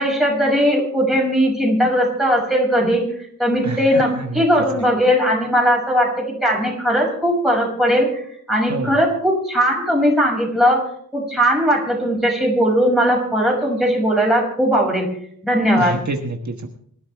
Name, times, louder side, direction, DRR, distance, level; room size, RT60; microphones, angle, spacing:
voice 1, 0.0-3.0 3.4-8.2 8.5-15.1 15.4-16.0, equal, ahead, -1 dB, 6.5 m, -18 dB
voice 2, 15.7-16.7, right 2 dB, 55° right, 3 dB, 1.4 m, -27 dB
25.5 x 12.5 x 3.5 m, 0.64 s
wide cardioid pair, 100°, 33 cm